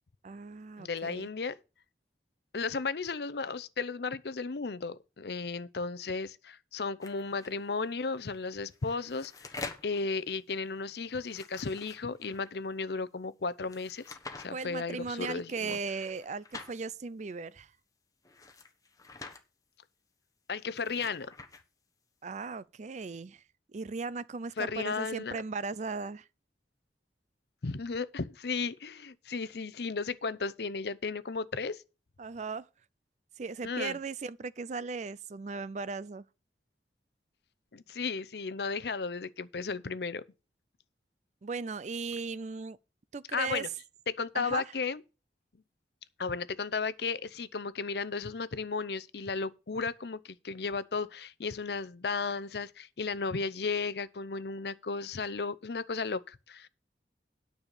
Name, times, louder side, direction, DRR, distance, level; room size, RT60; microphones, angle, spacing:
voice 1, 0.2-1.3 14.5-17.7 22.2-23.4 23.7-26.3 32.2-32.7 33.4-36.3 41.4-42.8 43.1-43.6 44.3-44.6, right 4 dB, 40° right, 0.4 m, -37 dB
voice 2, 0.8-1.6 2.5-9.3 9.8-15.8 20.5-21.3 24.6-25.4 27.6-31.8 33.6-34.0 37.7-40.2 43.3-43.7 44.1-45.0 46.2-56.7, left 4 dB, 65° left, 0.6 m, -34 dB
sound 1, 7.0-7.5 8.7-10.0 11.2-12.5 13.7-14.5 15.9-16.7 18.2-19.4 20.5-21.6, left 3 dB, 20° left, 1.2 m, -46 dB
9.8 x 5.6 x 6.7 m
head